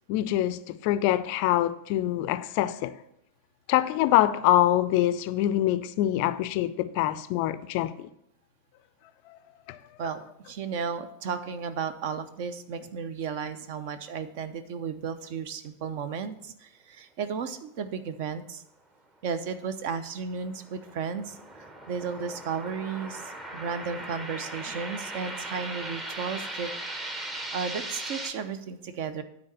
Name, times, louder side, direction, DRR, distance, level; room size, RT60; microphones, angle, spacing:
voice 1, 0.1-2.9 3.7-8.1 9.3-9.4 9.7-9.8, left 14 dB, 45° left, 0.4 m, -25 dB
voice 2, 10.0-18.6 19.2-23.2 23.5-26.7 27.5-29.2, right 6 dB, 50° right, 0.7 m, -34 dB
sound 1, 20.1-28.3, right 1 dB, 20° right, 1.0 m, -38 dB
9.7 x 4.0 x 6.7 m
figure-of-eight pair, 90°, 0 cm